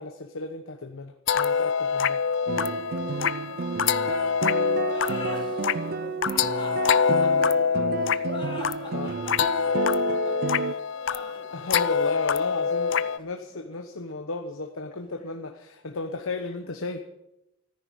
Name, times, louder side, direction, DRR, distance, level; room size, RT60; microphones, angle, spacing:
voice 1, 0.0-2.2 8.9-9.2 11.5-17.0, left 3 dB, 85° left, 5 dB, 1.1 m, -34 dB
sound 1, 1.3-13.2, left 6 dB, 60° left, 0.5 m, -25 dB
voice 2, 2.4-7.8 9.0-11.7 12.1-12.7 15.1-15.3 16.4-16.6, left 2 dB, 40° left, 2 dB, 3.1 m, -51 dB
sound 2, 2.5-10.7, right 4 dB, 50° right, 0.5 m, -31 dB
sound 3, 4.8-14.1, left 2 dB, 25° left, 3.7 m, -43 dB
14.0 x 10.5 x 9.4 m, 0.89 s
head